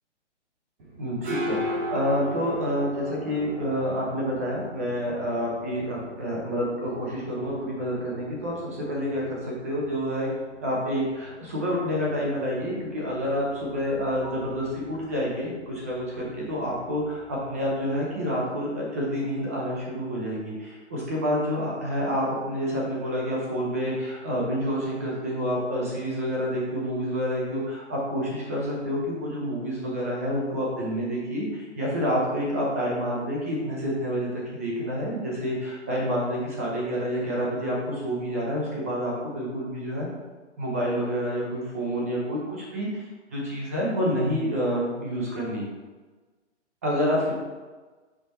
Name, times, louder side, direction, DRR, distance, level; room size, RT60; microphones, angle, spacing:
sound 1, 0.8-18.3, equal, 45° right, 1.8 m, -40 dB
voice 1, 1.0-10.3 10.6-40.1 40.6-45.6 46.8-47.3, equal, 15° right, -4 dB, 0.6 m, -28 dB
5.6 x 4.4 x 4.0 m, 1.3 s
hypercardioid pair, 165°, 36 cm